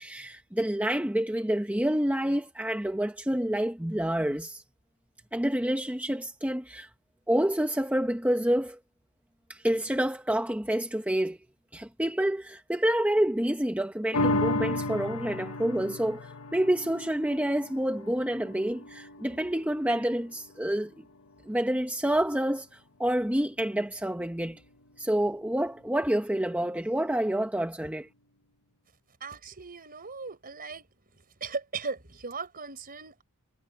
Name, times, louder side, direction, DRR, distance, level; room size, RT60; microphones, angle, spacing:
voice 1, 0.0-4.6 5.3-6.9 7.3-8.8 9.5-11.4 11.7-20.9 21.5-24.6 25.0-28.1, right 1 dB, 5° right, 1.1 m, -28 dB
sound 1, 14.1-20.8 21.3-21.4, left 2 dB, 80° left, 1.5 m, -34 dB
voice 2, 29.2-30.8 31.4-33.2, right 4 dB, 40° right, 4.8 m, -38 dB
head